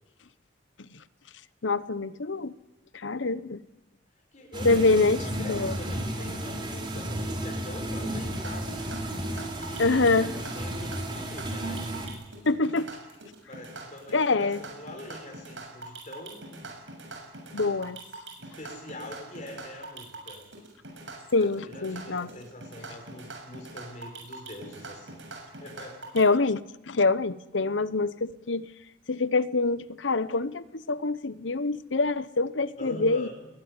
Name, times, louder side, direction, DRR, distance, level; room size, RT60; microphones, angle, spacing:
voice 1, 1.6-2.5 2.9-3.6 4.6-5.2 5.5-5.8 9.8-10.3 12.5-12.9 14.1-14.6 17.5-18.0 21.3-22.3 26.1-26.6 26.9-28.7 29.1-33.3, left 3 dB, 85° left, 16 dB, 0.9 m, -25 dB
voice 2, 4.3-8.8 9.5-11.8 13.5-16.7 18.4-20.4 21.4-25.2 25.6-26.0 32.8-33.3, left 1 dB, 40° left, 1 dB, 5.3 m, -44 dB
sound 1, 4.5-12.1, right 1 dB, 25° right, 4.9 m, -33 dB
sound 2, 8.3-26.2, right 2 dB, 85° right, 7.1 m, -43 dB
21.5 x 18.5 x 9.7 m, 0.98 s
head